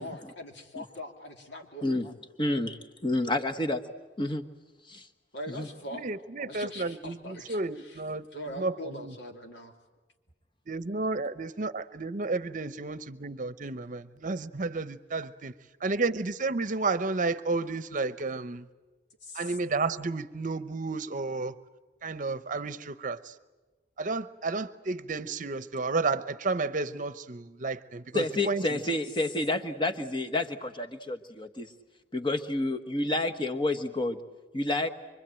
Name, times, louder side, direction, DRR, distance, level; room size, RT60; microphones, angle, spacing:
voice 1, 0.0-1.9 5.3-6.1 6.4-8.0 8.3-9.7 19.2-19.6, equal, 75° left, 3 dB, 2.9 m, -42 dB
voice 2, 2.4-3.8 4.2-4.4 4.9-5.1 5.5-5.7 28.1-31.7 32.1-34.2 34.5-34.9, left 2 dB, 25° left, 6 dB, 1.3 m, -29 dB
voice 3, 5.9-8.3 8.6-9.1 10.7-15.5 15.8-18.7 19.3-21.6 22.0-23.3 24.0-28.8, right 3 dB, 45° right, 14 dB, 0.8 m, -32 dB
25.0 x 24.0 x 9.0 m, 1.2 s
head